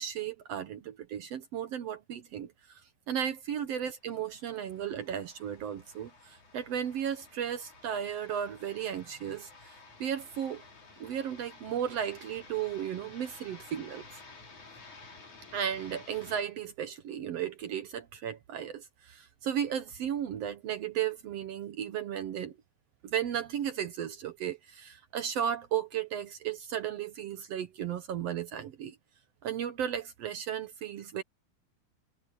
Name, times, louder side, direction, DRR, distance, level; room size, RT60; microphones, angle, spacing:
voice 1, 0.0-2.8 3.1-10.6 11.0-14.0 15.5-22.5 23.0-29.0 29.4-31.2, right 9 dB, 65° right, 1.7 m, -35 dB
sound 1, 3.9-16.4, left 3 dB, 60° left, 7.3 m, -53 dB
omnidirectional pair, 3.7 m